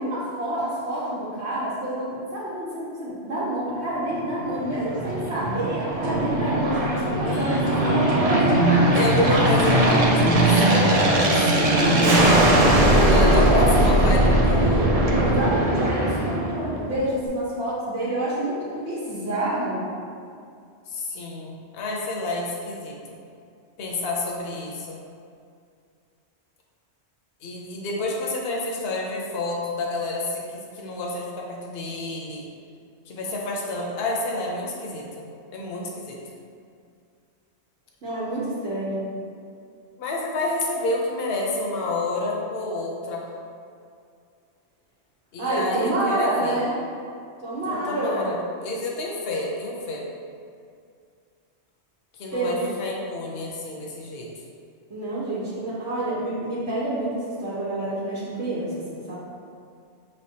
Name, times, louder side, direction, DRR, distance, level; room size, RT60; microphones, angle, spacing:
voice 1, 0.0-9.6 11.8-13.9 15.1-19.9 38.0-39.1 45.4-46.8 47.4-48.3 52.3-52.6 54.9-59.1, right 1 dB, 75° right, -9 dB, 1.2 m, -28 dB
Aircraft, 4.2-17.0, right 1 dB, 50° right, 0.4 m, -20 dB
sound 1, 5.9-13.6, right 1 dB, 30° right, 0.8 m, -26 dB
voice 2, 7.2-8.1 8.9-11.2 11.5-11.9 13.1-14.9 20.9-23.2 23.8-25.0 27.4-32.4 33.1-36.2 40.0-43.3 45.3-46.6 47.6-50.1 52.2-54.3, left 2 dB, 65° left, -2 dB, 0.9 m, -29 dB
5.8 x 3.3 x 2.8 m, 2.3 s
omnidirectional pair, 1.1 m